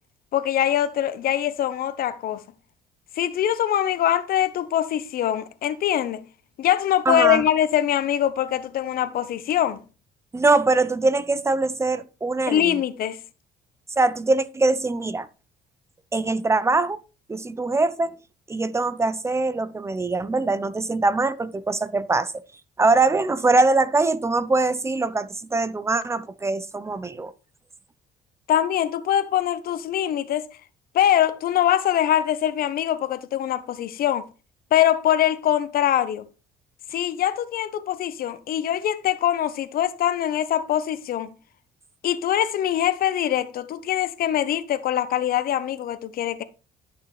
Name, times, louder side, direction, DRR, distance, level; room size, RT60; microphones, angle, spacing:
voice 1, 0.3-2.4 3.2-6.2 6.6-9.8 12.5-13.2 28.5-30.5 30.9-34.3 34.7-36.2 36.9-41.3 42.0-46.4, left 11 dB, 60° left, 1.0 m, -23 dB
voice 2, 7.1-7.4 10.3-12.8 14.0-15.3 16.1-17.0 17.3-18.2 18.5-22.3 22.8-27.3, right 3 dB, 15° right, 0.7 m, -22 dB
11.0 x 6.5 x 3.2 m
cardioid pair, 110°, 17 cm